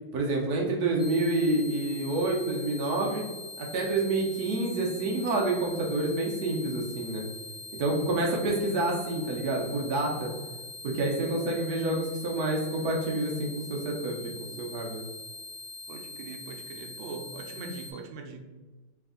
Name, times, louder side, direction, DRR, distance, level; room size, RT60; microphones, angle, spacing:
voice 1, 0.1-3.2 3.6-7.2 7.8-10.3 10.8-15.0, right 2 dB, 65° right, -1 dB, 1.0 m, -28 dB
sound 1, 1.0-17.9, left 2 dB, 40° right, 0.4 m, -43 dB
voice 2, 15.9-18.4, right 4 dB, 80° right, 3 dB, 1.4 m, -41 dB
3.4 x 3.1 x 3.7 m, 1.2 s
omnidirectional pair, 2.3 m